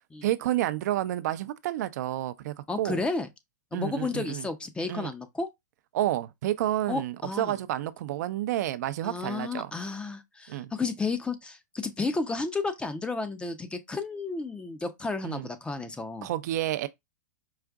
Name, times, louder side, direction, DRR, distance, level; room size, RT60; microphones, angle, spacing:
voice 1, 0.2-3.0 3.7-4.5 4.9-5.1 5.9-9.7 10.5-10.7 15.2-15.5 16.2-16.9, right 13 dB, 60° right, 0.5 m, -30 dB
voice 2, 2.7-3.3 3.7-5.5 6.9-7.6 9.0-16.3, left 3 dB, 10° left, 0.5 m, -32 dB
4.8 x 2.5 x 2.3 m
hypercardioid pair, 115°, 10 cm